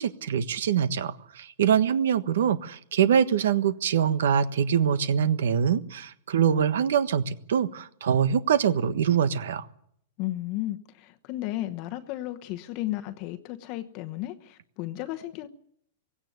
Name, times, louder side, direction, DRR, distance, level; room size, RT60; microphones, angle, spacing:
voice 1, 0.0-9.7, right 8 dB, 80° right, 1.4 m, -24 dB
voice 2, 10.2-15.5, left 15 dB, 40° left, 1.0 m, -34 dB
18.0 x 16.5 x 9.4 m
supercardioid pair, 155°, 0 cm